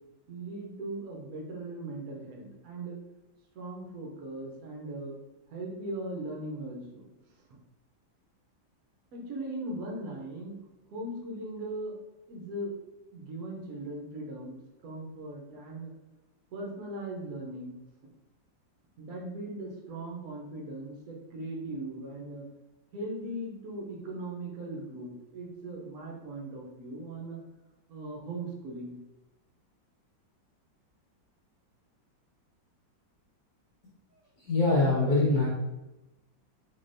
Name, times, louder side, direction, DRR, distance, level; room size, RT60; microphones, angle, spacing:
voice 1, 0.3-3.0 3.5-5.2 5.5-7.1 9.1-10.6 10.9-12.0 12.3-12.7 13.1-15.9 16.5-17.7 19.0-22.5 22.9-27.4 27.9-29.0, right 2 dB, 60° right, -1 dB, 1.0 m, -39 dB
voice 2, 34.4-35.5, left 2 dB, 60° left, -7 dB, 1.2 m, -24 dB
3.7 x 3.2 x 2.6 m, 1.0 s
omnidirectional pair, 2.1 m